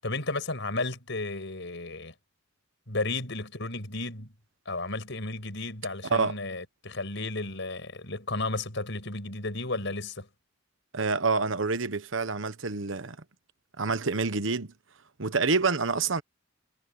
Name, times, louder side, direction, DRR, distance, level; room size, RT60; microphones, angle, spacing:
voice 1, 0.0-2.1 2.9-4.3 4.7-10.3, left 2 dB, 65° left, 6.9 m, -33 dB
voice 2, 10.9-13.2 13.8-14.7 15.2-16.2, right 4 dB, 70° right, 1.2 m, -27 dB
head